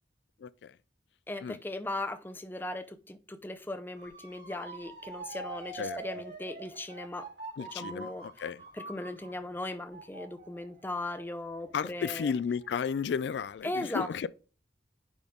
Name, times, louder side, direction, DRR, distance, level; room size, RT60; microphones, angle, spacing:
voice 1, 1.3-7.3 7.6-8.3 8.7-12.3 13.6-14.3, left 2 dB, 10° left, 0.5 m, -38 dB
Motor vehicle (road) / Siren, 4.0-12.9 13.3-13.7, right 3 dB, 80° right, 4.1 m, -45 dB
voice 2, 7.6-8.1 8.4-8.6 11.7-14.3, left 6 dB, 75° left, 0.3 m, -33 dB
10.0 x 3.6 x 3.7 m
head